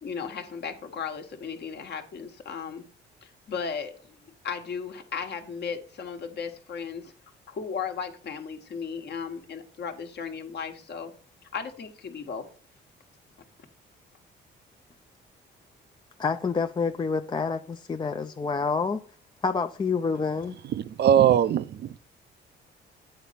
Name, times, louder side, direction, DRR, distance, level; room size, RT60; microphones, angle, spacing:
voice 1, 0.0-2.8 3.2-4.2 4.4-7.1 7.5-11.1 11.5-12.4, left 6 dB, 55° left, 1.3 m, -35 dB
voice 2, 16.2-19.0 19.4-20.6, left 4 dB, 25° left, 0.4 m, -28 dB
voice 3, 20.6-22.0, right 10 dB, 55° right, 0.5 m, -21 dB
8.8 x 4.1 x 5.6 m
cardioid pair, 90°, 20 cm